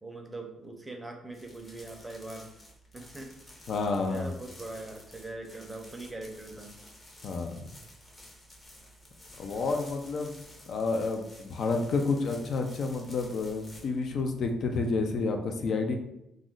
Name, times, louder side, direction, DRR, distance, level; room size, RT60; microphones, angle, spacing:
voice 1, 0.0-2.5 2.9-3.3 4.1-6.7, right 2 dB, 10° right, 2 dB, 0.6 m, -42 dB
sound 1, 1.3-15.3, left 1 dB, 30° left, 0.7 m, -52 dB
voice 2, 3.7-4.4 7.2-7.5 9.4-10.3 10.7-16.0, left 3 dB, 60° left, 4 dB, 0.4 m, -30 dB
2.4 x 2.1 x 3.7 m, 0.83 s
cardioid pair, 90°, 0 cm